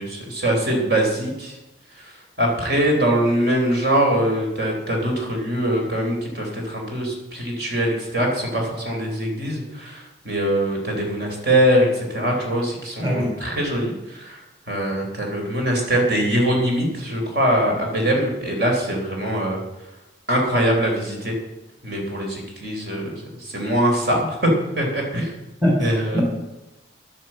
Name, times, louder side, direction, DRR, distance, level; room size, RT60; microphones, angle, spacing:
voice 1, 0.0-1.5 2.0-2.1 2.4-14.4 14.7-19.6 20.3-21.3 21.8-25.3 25.8-26.2, right 1 dB, 60° right, 0 dB, 4.1 m, -22 dB
voice 2, 13.0-13.3 25.6-26.2, equal, 20° right, -1 dB, 3.5 m, -22 dB
11.5 x 11.0 x 7.7 m, 0.98 s
head